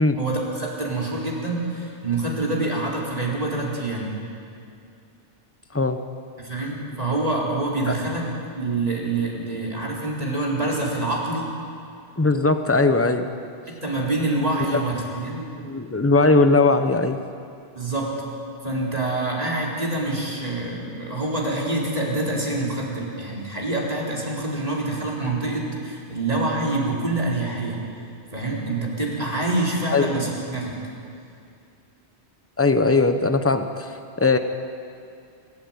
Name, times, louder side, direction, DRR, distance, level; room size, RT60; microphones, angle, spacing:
voice 1, 0.2-4.2 6.4-8.3 8.6-11.5 13.7-15.5 17.7-18.1 18.6-27.8 28.3-30.8, right 2 dB, 35° right, -3 dB, 4.1 m, -26 dB
voice 2, 12.2-13.3 14.7-14.8 15.6-17.2 29.9-30.1 32.6-34.4, left 3 dB, 15° left, 8 dB, 1.0 m, -19 dB
26.5 x 13.5 x 8.9 m, 2.4 s
omnidirectional pair, 1.1 m